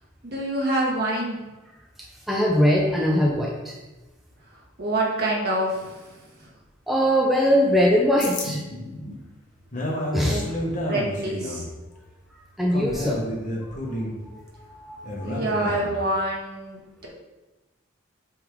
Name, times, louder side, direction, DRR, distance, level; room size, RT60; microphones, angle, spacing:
voice 1, 0.2-1.4 4.8-6.1 6.4-6.5 10.2-11.6 15.2-17.1, right 1 dB, 45° right, -3 dB, 1.6 m, -27 dB
voice 2, 2.3-3.7 6.9-8.6 10.1-10.4 12.6-13.2 14.7-15.3, equal, ahead, -2 dB, 0.5 m, -21 dB
sound 1, 8.2-16.1, equal, 40° left, 1.0 m, -31 dB
7.7 x 3.5 x 3.6 m, 1.1 s
head